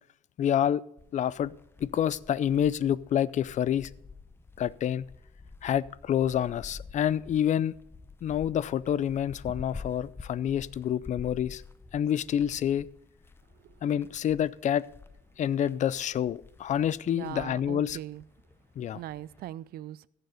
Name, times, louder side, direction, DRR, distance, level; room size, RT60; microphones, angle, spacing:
voice 1, 0.4-0.8 1.1-1.5 1.8-3.9 4.6-5.1 5.6-7.7 8.2-11.6 11.9-12.9 13.8-14.8 15.4-18.0 18.8-19.0, left 10 dB, 45° left, 0.5 m, -28 dB
sound 1, 1.0-19.5, left 4 dB, 15° left, 0.7 m, -49 dB
voice 2, 17.1-18.2 18.9-20.1, right 13 dB, 65° right, 0.4 m, -40 dB
15.5 x 6.9 x 5.0 m
cardioid pair, 110°, 17 cm